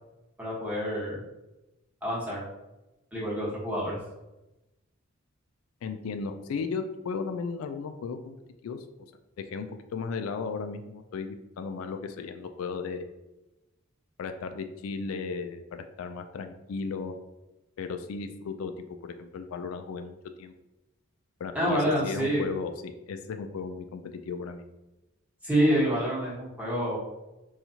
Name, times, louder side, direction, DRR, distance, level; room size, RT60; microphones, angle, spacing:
voice 1, 0.4-1.2 2.0-2.4 3.1-4.0 21.5-22.4 25.4-27.0, equal, 10° right, -7 dB, 1.2 m, -27 dB
voice 2, 5.8-8.3 8.6-8.8 9.4-13.1 14.2-17.1 17.8-18.7 19.0-20.5 21.4-24.7, left 5 dB, 85° left, 8 dB, 0.3 m, -35 dB
4.3 x 2.3 x 2.7 m, 0.99 s
head